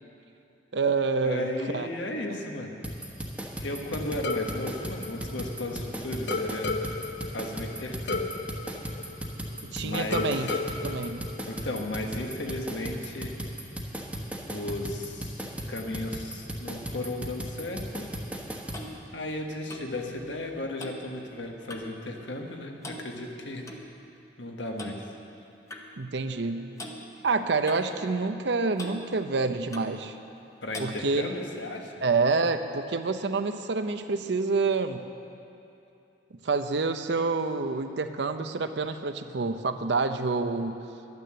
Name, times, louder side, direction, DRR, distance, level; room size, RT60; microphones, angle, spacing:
voice 1, 0.7-1.5 1.7-1.9 9.6-11.2 26.0-26.7 27.2-30.2 30.8-31.3 32.0-35.1 36.4-40.8, right 4 dB, 70° right, 9 dB, 0.6 m, -27 dB
voice 2, 1.2-2.7 3.6-6.8 7.3-8.3 9.8-10.3 11.5-13.3 14.5-18.0 19.1-23.6 24.4-25.1 30.6-31.9, left 1 dB, 85° left, 2 dB, 1.4 m, -35 dB
sound 1, 2.8-18.8, equal, 10° right, 1.1 m, -36 dB
Sky Pipe Synth Stab Loop, 4.2-5.8 6.3-9.7 10.1-12.1, left 3 dB, 65° left, 0.7 m, -34 dB
Clock, 18.2-22.0 22.3-22.6 22.8-23.8 24.8-25.0 25.7-25.9 26.8-27.0 27.7-28.5 28.8-29.0 29.7-30.0 30.7-31.0, left 1 dB, 15° left, 0.9 m, -43 dB
11.5 x 9.5 x 7.6 m, 2.8 s
head